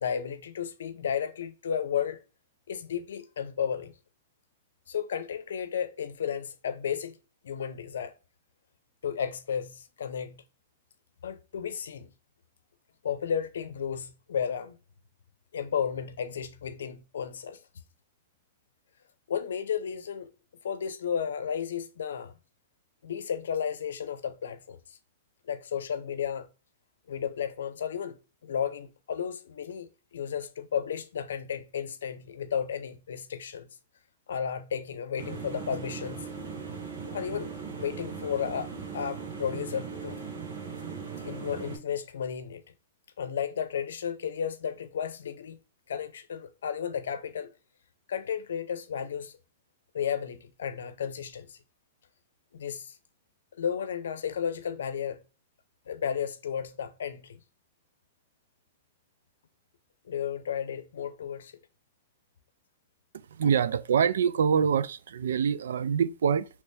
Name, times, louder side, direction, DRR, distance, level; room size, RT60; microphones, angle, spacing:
voice 1, 0.0-2.2 2.7-3.9 4.9-7.2 7.4-8.1 9.0-10.4 11.2-12.1 13.0-14.8 15.5-17.6 19.3-20.3 20.6-22.4 23.0-25.0 25.4-26.5 27.1-33.7 34.3-36.3 37.1-37.5 37.8-40.3 41.2-42.6 43.2-45.6 45.9-47.5 48.1-49.4 49.9-51.6 52.5-53.0 53.6-55.2 55.9-57.4 60.0-61.5, left 8 dB, 85° left, 0.6 m, -33 dB
sound 1, 35.2-41.8, right 5 dB, 65° right, 1.3 m, -39 dB
voice 2, 63.3-66.5, right 7 dB, 85° right, 0.3 m, -25 dB
3.3 x 3.1 x 3.2 m
hypercardioid pair, 155°, 0 cm